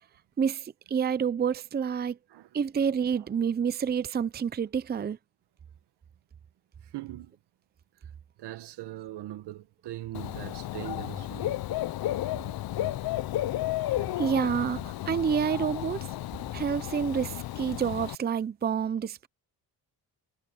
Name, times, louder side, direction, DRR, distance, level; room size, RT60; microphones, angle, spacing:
voice 1, 0.4-2.2 2.5-5.2 14.2-16.1 16.5-19.3, right 7 dB, 25° right, 0.6 m, -28 dB
voice 2, 6.8-7.4 8.0-8.1 8.4-11.6 13.7-13.8, right 14 dB, 80° right, 1.4 m, -41 dB
Dog / Bird, 10.1-18.1, left 14 dB, 65° left, 0.7 m, -33 dB
cardioid pair, 110°, 40 cm